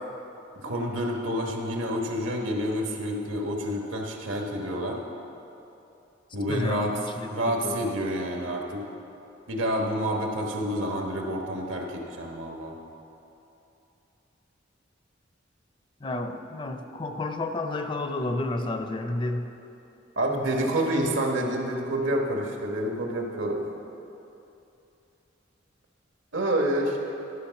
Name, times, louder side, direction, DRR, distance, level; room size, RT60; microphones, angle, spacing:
voice 1, 0.6-5.0 6.3-6.9 7.3-8.8 9.5-12.7 20.2-23.7 26.3-27.0, right 1 dB, 85° right, 1 dB, 1.3 m, -28 dB
voice 2, 6.5-7.8 16.0-19.5, left 2 dB, 25° left, 7 dB, 0.5 m, -31 dB
12.0 x 5.8 x 5.9 m, 2.8 s
head